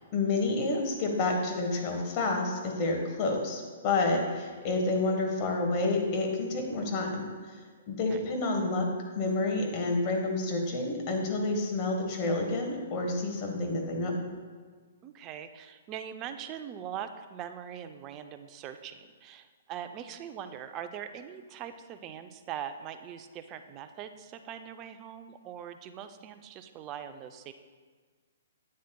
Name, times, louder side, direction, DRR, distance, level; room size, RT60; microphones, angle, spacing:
voice 1, 0.0-7.6 7.9-14.1, left 2 dB, 35° left, 2 dB, 1.3 m, -29 dB
voice 2, 15.0-27.5, right 9 dB, 30° right, 8 dB, 0.4 m, -42 dB
8.5 x 7.3 x 2.2 m, 1.5 s
hypercardioid pair, 130°, 0 cm